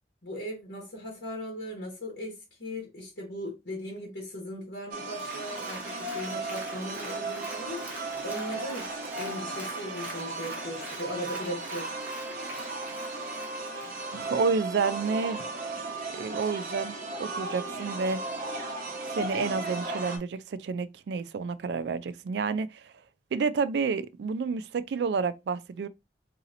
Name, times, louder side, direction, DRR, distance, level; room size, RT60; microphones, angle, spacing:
voice 1, 0.2-8.9 9.2-11.9, equal, 90° left, 1.2 m, -38 dB
sound 1, 4.9-20.2, right 2 dB, 50° right, 1.0 m, -36 dB
Applause, 5.0-14.7 15.2-15.3, right 1 dB, 10° right, 0.8 m, -45 dB
voice 2, 14.1-15.7 16.2-18.2 19.1-22.9 23.3-25.9, right 5 dB, 75° right, 0.3 m, -30 dB
4.0 x 2.8 x 2.5 m
head